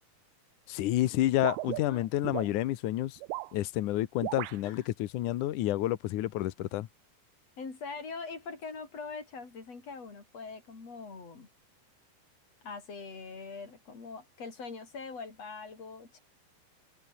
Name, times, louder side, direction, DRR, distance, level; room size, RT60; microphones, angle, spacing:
voice 1, 0.7-3.2 3.5-6.9, left 14 dB, 80° left, 1.8 m, -29 dB
sound 1, 1.4-2.5 3.2-3.5 4.2-4.6, right 19 dB, 80° right, 2.4 m, -36 dB
voice 2, 7.6-11.5 12.6-16.2, left 4 dB, 35° left, 6.0 m, -43 dB
omnidirectional pair, 5.0 m